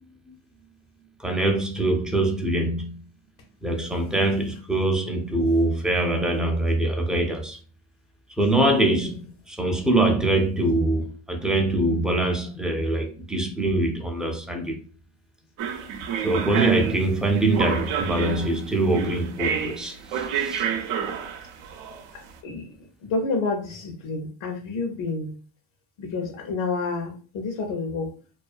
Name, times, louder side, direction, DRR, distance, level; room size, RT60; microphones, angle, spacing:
voice 1, 1.2-2.9 3.6-7.6 8.4-14.8 16.2-20.7, right 2 dB, ahead, 0.4 m, -23 dB
sound 1, 15.6-22.3, right 7 dB, 80° right, 0.6 m, -29 dB
voice 2, 23.0-25.3 26.0-28.1, left 3 dB, 70° left, 0.8 m, -29 dB
2.4 x 2.2 x 2.4 m
cardioid pair, 85°, 47 cm